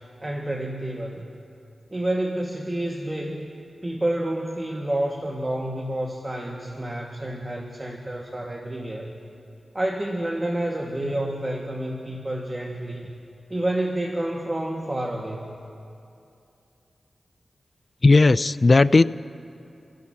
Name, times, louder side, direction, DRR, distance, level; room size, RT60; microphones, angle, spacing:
voice 1, 0.2-1.3 1.9-3.5 3.8-9.1 9.7-13.1 13.5-15.5, right 1 dB, 30° right, 0 dB, 1.9 m, -29 dB
voice 2, 18.0-19.0, left 3 dB, 50° left, 15 dB, 0.4 m, -15 dB
29.5 x 17.0 x 2.9 m, 2.6 s
cardioid pair, 45°, 0 cm